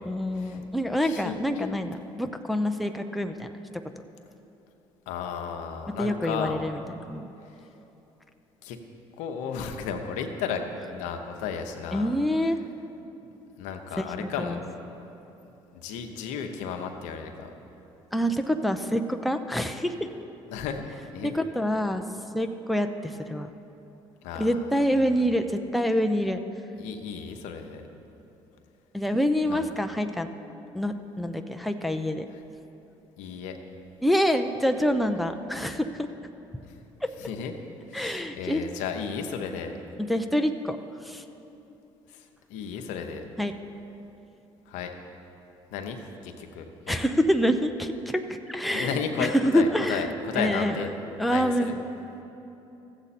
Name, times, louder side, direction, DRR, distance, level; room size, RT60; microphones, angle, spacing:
voice 1, 0.1-3.5 6.0-6.8 7.1-7.3 11.9-12.6 14.0-14.6 18.1-20.1 21.2-22.0 22.3-23.5 24.4-26.4 28.9-30.3 30.7-32.3 34.0-36.1 37.9-38.6 40.0-40.8 41.0-41.2 43.4-43.5 46.9-50.8 51.2-51.7, equal, ahead, 5 dB, 0.6 m, -26 dB
voice 2, 1.0-1.8 5.1-6.6 8.6-8.8 9.2-10.6 10.9-12.1 13.6-14.6 15.7-17.5 20.5-20.8 21.1-21.3 24.2-25.0 26.8-27.8 29.5-29.6 33.2-33.6 37.2-37.5 37.9-39.7 42.1-43.2 44.7-44.9 45.7-47.0 48.7-50.9 51.3-51.8, left 6 dB, 80° left, 5 dB, 0.8 m, -34 dB
14.0 x 7.9 x 4.2 m, 3.0 s
supercardioid pair, 65°, 13 cm